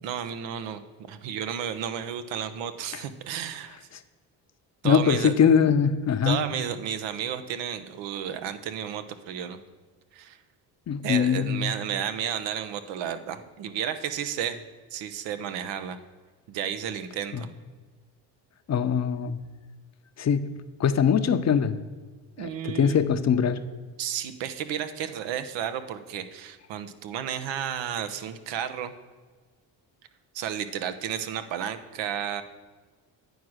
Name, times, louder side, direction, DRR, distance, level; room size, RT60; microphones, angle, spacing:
voice 1, 0.0-0.8 1.1-3.8 4.8-5.3 6.2-9.6 10.1-10.4 11.0-14.6 14.9-16.0 16.5-17.5 22.4-23.0 24.0-28.9 30.3-32.4, right 9 dB, 75° right, 11 dB, 0.8 m, -32 dB
voice 2, 4.8-6.4 10.9-11.7 17.3-17.4 18.7-19.4 20.2-20.5 20.8-21.8 22.4-23.6, left 7 dB, 40° left, 10 dB, 0.7 m, -22 dB
9.1 x 4.8 x 6.3 m, 1.4 s
supercardioid pair, 65°, 44 cm